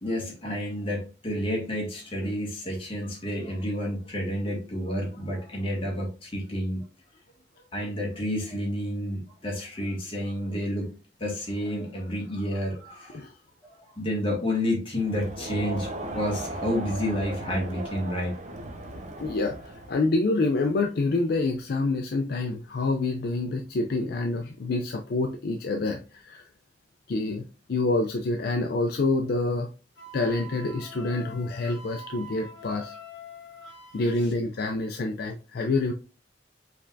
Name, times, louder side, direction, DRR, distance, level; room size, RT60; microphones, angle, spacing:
voice 1, 0.0-6.8 7.7-10.9 11.2-13.2 13.8-18.4 34.2-34.3, equal, 30° left, -2 dB, 1.8 m, -30 dB
Crowd, 15.0-20.1, right 1 dB, 40° right, 0.6 m, -37 dB
voice 2, 19.2-26.4 27.1-27.4 27.7-29.7 30.1-33.0 33.9-35.9, left 2 dB, 60° left, 4 dB, 0.4 m, -27 dB
Wind instrument woodwind instrument, 30.0-34.2, equal, 75° left, 1.4 m, -44 dB
5.2 x 3.3 x 2.6 m, 0.34 s
head